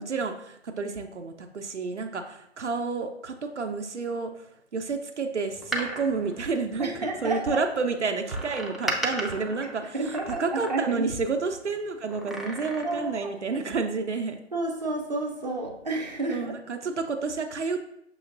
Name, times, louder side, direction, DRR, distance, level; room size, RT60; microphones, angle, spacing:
voice 1, 0.0-4.3 4.7-14.4 16.3-17.8, right 4 dB, 75° right, 4 dB, 0.7 m, -30 dB
Door, 5.5-7.3 8.3-11.1 12.1-13.2 13.5-13.6, equal, ahead, 0.3 m, -35 dB
voice 2, 6.8-7.6 9.9-11.1 12.8-13.3 14.5-16.5, right 2 dB, 35° right, -1 dB, 0.8 m, -30 dB
6.2 x 3.0 x 2.6 m, 0.79 s
figure-of-eight pair, 175°, 35 cm